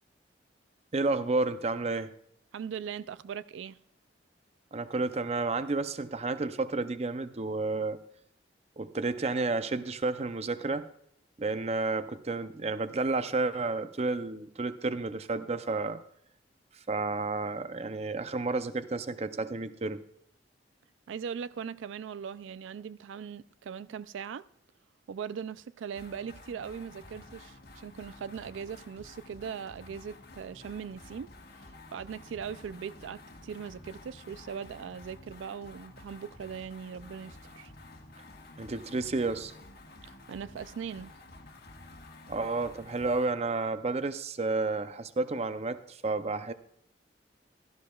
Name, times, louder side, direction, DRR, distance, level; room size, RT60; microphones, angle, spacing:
voice 1, 0.9-2.1 4.7-8.0 8.8-10.9 11.4-16.0 16.9-20.0 38.6-39.5 42.3-46.5, right 3 dB, 35° right, 0.5 m, -31 dB
voice 2, 2.5-3.8 21.1-24.4 25.1-31.3 31.6-37.7 40.1-41.1, right 7 dB, 85° right, 0.3 m, -40 dB
sound 1, 25.9-43.3, left 2 dB, 55° left, 1.3 m, -51 dB
16.5 x 12.5 x 2.3 m
head